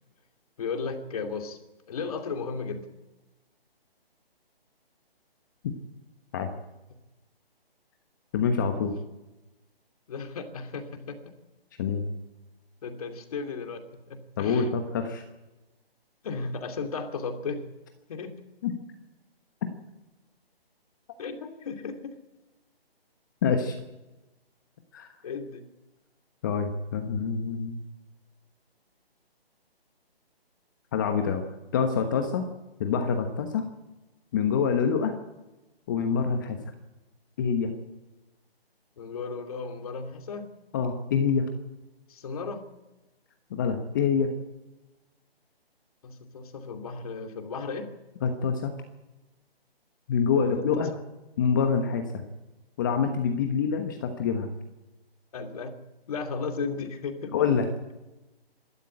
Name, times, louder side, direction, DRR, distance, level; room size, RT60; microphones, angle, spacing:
voice 1, 0.6-1.6 1.9-2.9 10.1-11.3 12.8-13.8 14.1-14.7 16.2-17.6 18.1-18.3 21.2-22.2 25.2-25.6 39.0-40.5 42.1-42.7 46.0-47.9 50.4-50.8 55.3-55.7 56.1-57.5, left 4 dB, 35° left, 4 dB, 2.7 m, -35 dB
voice 2, 8.3-8.9 11.8-12.0 14.4-15.2 18.6-18.7 23.4-23.7 24.9-25.1 26.4-27.8 30.9-31.4 31.7-32.4 32.8-33.6 34.3-35.1 35.9-36.6 37.4-37.7 40.7-41.5 43.5-44.3 48.2-48.7 50.1-50.9 51.4-52.2 52.8-54.5 57.3-57.7, left 6 dB, 20° left, 5 dB, 1.2 m, -26 dB
26.0 x 12.5 x 8.6 m, 1.1 s
hypercardioid pair, 165°, 31 cm